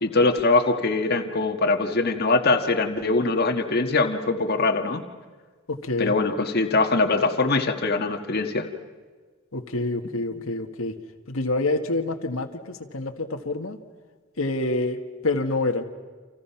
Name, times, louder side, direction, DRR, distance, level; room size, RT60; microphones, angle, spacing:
voice 1, 0.0-5.0 6.0-8.7, left 3 dB, 50° left, 4 dB, 1.8 m, -22 dB
voice 2, 5.7-6.1 9.5-11.0 11.3-13.8 14.4-15.9, left 2 dB, 85° left, 4 dB, 1.8 m, -27 dB
30.0 x 27.5 x 5.9 m, 1.4 s
head